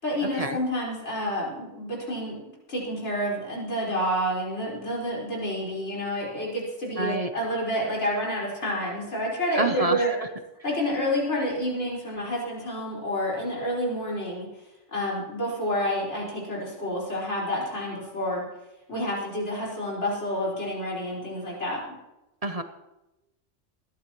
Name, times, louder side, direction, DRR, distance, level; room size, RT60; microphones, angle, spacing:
voice 1, 0.0-2.4 2.7-10.1 10.6-14.5 14.9-18.4 18.9-21.8, equal, 65° left, -5 dB, 5.0 m, -29 dB
voice 2, 7.0-7.3 9.6-10.3 22.4-22.6, right 2 dB, 35° right, 7 dB, 0.7 m, -27 dB
22.0 x 11.5 x 3.0 m, 0.96 s
omnidirectional pair, 1.3 m